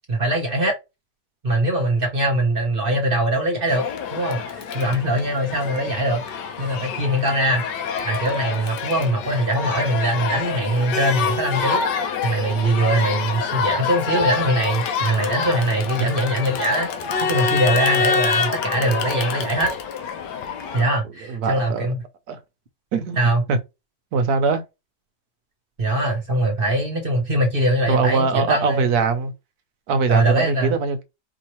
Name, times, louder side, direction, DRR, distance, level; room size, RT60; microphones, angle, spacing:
voice 1, 0.1-0.7 1.4-3.8 4.1-6.2 6.6-7.6 8.0-11.8 12.2-16.9 17.3-19.7 20.7-22.0 23.2-23.4 25.8-28.9 30.1-30.7, right 1 dB, 40° right, 0.9 m, -22 dB
Crowd, 3.7-20.8, left 6 dB, 85° left, 1.3 m, -26 dB
voice 2, 21.3-21.9 22.3-22.4 22.9-23.2 23.5-23.6 24.1-24.6 27.9-29.3 29.9-31.0, right 4 dB, 65° right, 1.2 m, -21 dB
4.8 x 2.8 x 3.0 m
omnidirectional pair, 1.9 m